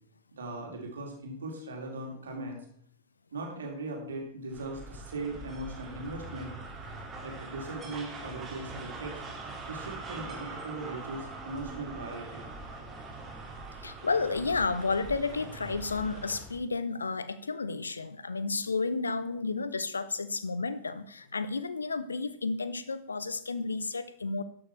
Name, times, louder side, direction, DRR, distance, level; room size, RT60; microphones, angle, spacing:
voice 1, 0.3-2.6 3.3-6.5 7.2-9.2 9.6-12.5, right 2 dB, 70° right, 1 dB, 2.7 m, -39 dB
sound 1, 4.5-16.6, right 3 dB, 20° right, 2.4 m, -43 dB
voice 2, 13.8-24.4, left 4 dB, 75° left, 15 dB, 0.6 m, -32 dB
12.5 x 6.4 x 4.4 m, 0.64 s
figure-of-eight pair, 90°, 0 cm